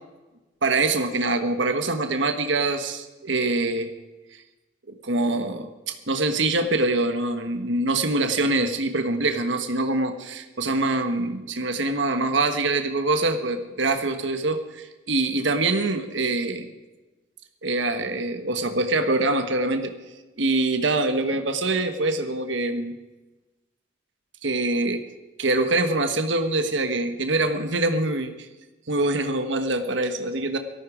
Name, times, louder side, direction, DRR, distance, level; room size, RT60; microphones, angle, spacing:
voice 1, 0.6-3.9 5.0-16.7 17.6-19.9 20.4-23.0 24.4-25.0 25.4-28.4 28.9-30.6, right 2 dB, 70° right, 7 dB, 1.3 m, -24 dB
18.0 x 13.5 x 5.0 m, 1.1 s
head